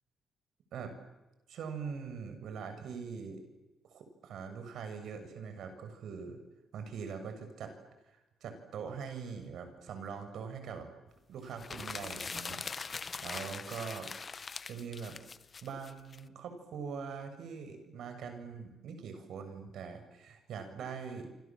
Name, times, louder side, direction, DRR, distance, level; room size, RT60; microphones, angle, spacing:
voice 1, 1.5-3.4 3.8-6.4 6.7-7.7 8.0-10.8 11.3-12.6 12.9-14.1 14.7-15.1 15.6-21.3, right 6 dB, 70° right, 7 dB, 6.9 m, -42 dB
sound 1, 11.5-16.2, left 5 dB, 35° left, 1.0 m, -42 dB
29.0 x 26.0 x 7.6 m, 1.1 s
cardioid pair, 90°, 0 cm